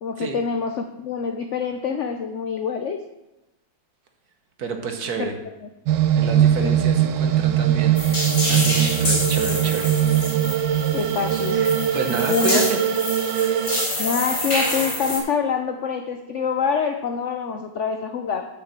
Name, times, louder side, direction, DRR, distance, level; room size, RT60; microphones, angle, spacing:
voice 1, 0.0-3.0 5.2-5.3 5.6-5.7 6.6-6.8 10.9-11.6 12.2-12.6 14.0-18.5, left 6 dB, 80° left, 6 dB, 0.6 m, -25 dB
voice 2, 4.6-5.3 6.1-9.9 11.5-12.8, right 4 dB, 55° right, 5 dB, 1.5 m, -29 dB
sound 1, 5.9-13.9, right 10 dB, 85° right, 1.4 m, -21 dB
sound 2, 8.0-15.2, left 1 dB, 35° left, 3.1 m, -27 dB
6.5 x 6.5 x 7.4 m, 0.96 s
omnidirectional pair, 2.1 m